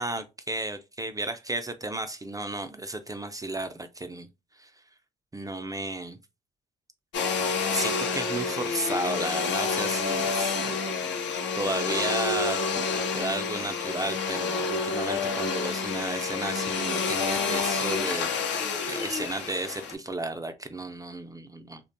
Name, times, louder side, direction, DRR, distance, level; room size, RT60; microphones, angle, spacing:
voice 1, 0.0-4.3 4.5-4.8 5.3-6.2 7.7-11.2 11.5-18.3 18.8-21.8, right 2 dB, 15° right, 0.4 m, -33 dB
Domestic sounds home sounds, 7.1-19.9, left 5 dB, 65° left, 0.6 m, -29 dB
2.5 x 2.1 x 2.5 m
supercardioid pair, 55°, 20 cm